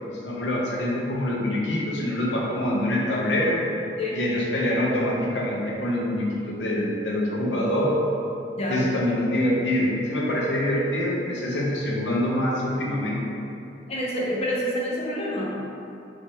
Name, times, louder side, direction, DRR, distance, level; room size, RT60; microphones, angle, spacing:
voice 1, 0.0-3.6 4.1-8.0 8.7-13.4, left 1 dB, 80° left, -3 dB, 0.7 m, -25 dB
voice 2, 8.6-8.9 13.9-15.5, equal, 35° left, -4 dB, 0.6 m, -27 dB
3.4 x 3.2 x 2.8 m, 2.7 s
head